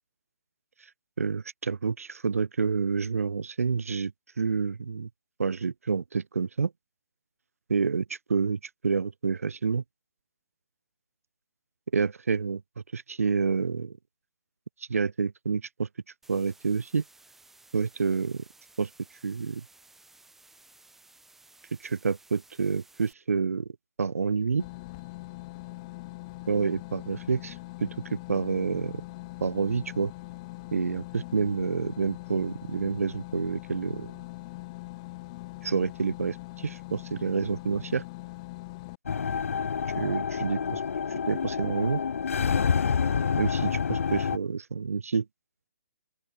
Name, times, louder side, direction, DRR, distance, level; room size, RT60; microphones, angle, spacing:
voice 1, 1.2-4.1 4.4-5.1 5.4-6.7 7.7-9.8 11.9-14.0 14.9-15.9 16.3-17.0 17.7-18.4 18.8-18.9 19.2-19.7 21.8-23.7 24.0-24.7 26.5-27.6 27.8-29.0 29.4-30.1 30.7-34.1 35.6-38.0 40.0-40.8 41.3-42.0 43.4-45.3, right 5 dB, 80° right, 0.9 m, -28 dB
sound 1, 16.2-23.1, right 2 dB, 5° right, 6.7 m, -57 dB
sound 2, 24.6-39.0, left 22 dB, 30° left, 4.8 m, -42 dB
sound 3, 39.1-44.4, left 6 dB, 70° left, 0.8 m, -28 dB
open air
hypercardioid pair, 145°, 8 cm